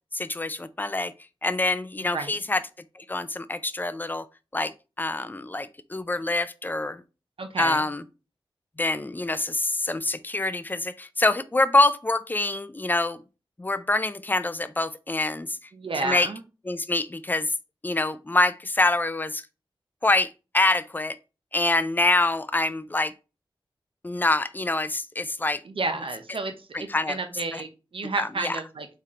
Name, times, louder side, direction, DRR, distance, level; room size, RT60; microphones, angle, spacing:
voice 1, 0.1-1.1 1.4-2.6 3.0-4.3 4.5-7.0 7.6-8.0 8.8-13.2 13.6-15.6 16.0-16.3 16.7-17.5 17.8-19.4 20.0-21.2 21.5-23.1 24.0-25.6 26.7-27.2 27.5-27.6 28.2-28.6, left 2 dB, 20° left, 0.4 m, -25 dB
voice 2, 2.0-2.4 7.4-7.8 15.7-16.4 25.6-28.9, right 3 dB, 70° right, 0.8 m, -31 dB
4.3 x 3.4 x 3.6 m
wide cardioid pair, 60°, 10 cm